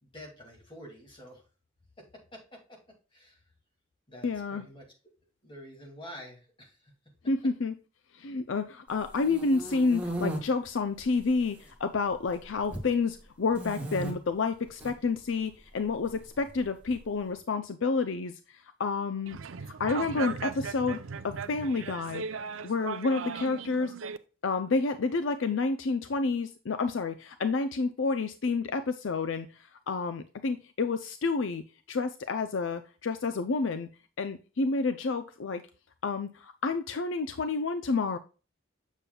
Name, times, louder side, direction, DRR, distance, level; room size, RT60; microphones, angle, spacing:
voice 1, 0.1-1.4 2.0-3.4 4.1-4.9 5.4-6.9, equal, 25° left, 2.5 m, -48 dB
voice 2, 4.2-4.6 7.3-7.8 8.1-22.2 22.6-23.9 24.4-31.6 31.9-33.9 34.2-35.6 36.0-38.2, left 4 dB, 65° left, 0.5 m, -29 dB
sound 1, 9.0-10.4 11.1-11.7 11.9-12.9 13.5-14.1 14.7-14.9 16.1-17.0, right 1 dB, 10° right, 1.7 m, -36 dB
sound 2, 19.3-24.2, right 5 dB, 80° right, 0.5 m, -38 dB
7.3 x 6.9 x 2.3 m
head